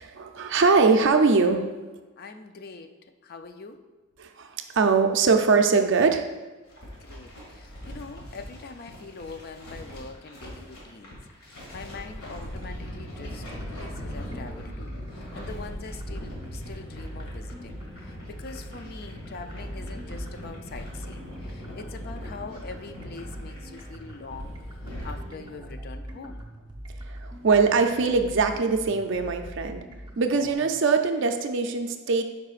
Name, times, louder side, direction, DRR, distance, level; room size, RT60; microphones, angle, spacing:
voice 1, 0.0-1.7 4.2-6.3 27.1-29.8 30.2-32.2, right 4 dB, 60° right, 6 dB, 0.5 m, -22 dB
voice 2, 2.2-2.9 3.2-3.8 7.0-11.2 11.4-24.5 25.0-26.4, left 4 dB, 45° left, 7 dB, 0.4 m, -43 dB
sound 1, 6.6-25.1, equal, 85° left, 1.8 m, -41 dB
sound 2, 13.5-30.5, equal, 20° right, 0.8 m, -42 dB
sound 3, 15.1-25.5, equal, 5° left, 0.9 m, -49 dB
10.5 x 4.7 x 2.4 m, 1.3 s
head